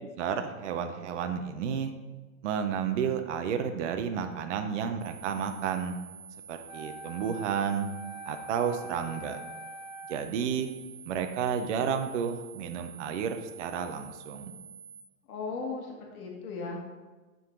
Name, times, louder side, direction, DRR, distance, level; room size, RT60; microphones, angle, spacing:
voice 1, 0.2-1.9 2.4-6.0 6.5-7.9 8.3-9.4 10.1-10.7 11.1-14.5, right 7 dB, 55° right, 7 dB, 0.6 m, -31 dB
sound 1, 5.0-15.0, right 6 dB, 25° right, 1.6 m, -49 dB
Wind instrument woodwind instrument, 6.7-10.4, equal, 35° left, 0.8 m, -45 dB
voice 2, 15.3-16.9, left 4 dB, 85° left, 0 dB, 1.5 m, -37 dB
9.3 x 3.8 x 3.6 m, 1.3 s
hypercardioid pair, 165°, 43 cm